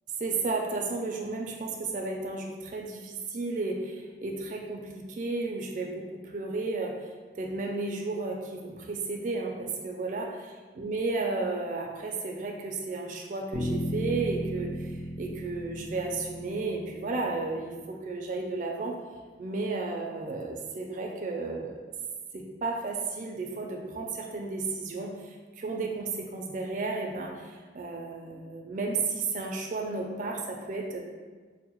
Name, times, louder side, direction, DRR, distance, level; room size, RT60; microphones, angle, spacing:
voice 1, 0.2-6.9 7.4-19.0 19.4-21.8 22.3-31.0, right 3 dB, 45° right, 1 dB, 0.3 m, -33 dB
sound 1, 13.5-17.9, equal, 40° left, 0.7 m, -35 dB
5.2 x 2.1 x 2.9 m, 1.4 s
head